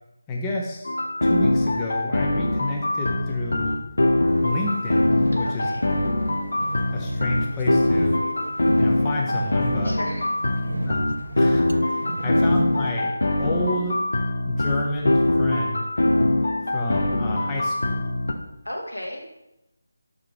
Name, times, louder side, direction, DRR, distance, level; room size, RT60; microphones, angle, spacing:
voice 1, 0.3-0.9 1.2-3.8 4.4-5.7 6.9-8.2 8.8-9.9 10.8-11.0 11.4-13.1 13.4-14.0 14.5-15.9 16.7-18.0, left 1 dB, 15° left, -2 dB, 0.6 m, -29 dB
sound 1, 0.8-18.3, left 1 dB, 65° left, 0.6 m, -23 dB
sound 2, 4.3-12.9, right 2 dB, 65° right, 0.3 m, -36 dB
voice 2, 5.4-5.8 9.8-10.3 18.6-19.4, left 1 dB, 80° left, 0 dB, 1.5 m, -34 dB
5.5 x 3.7 x 4.6 m, 0.88 s
figure-of-eight pair, 155°, 0 cm